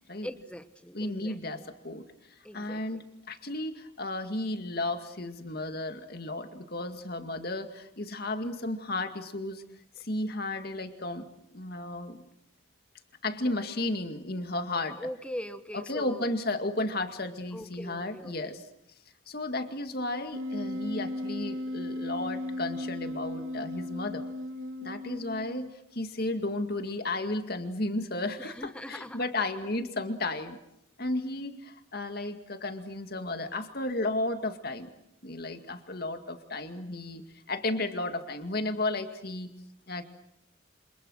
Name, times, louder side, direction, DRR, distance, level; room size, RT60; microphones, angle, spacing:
voice 1, 0.2-1.7 2.4-3.0 15.0-16.3 17.5-18.6 28.4-29.5, equal, 5° left, 10 dB, 1.2 m, -41 dB
voice 2, 0.9-2.1 2.5-9.6 10.0-12.3 13.2-15.0 15.7-18.7 19.3-24.3 24.8-30.6 31.0-34.9 35.2-37.2 37.5-39.5 39.9-40.1, left 2 dB, 50° left, 7 dB, 2.2 m, -33 dB
Wind instrument woodwind instrument, 20.3-25.7, left 1 dB, 85° right, 2.1 m, -36 dB
28.5 x 26.5 x 6.5 m, 0.78 s
head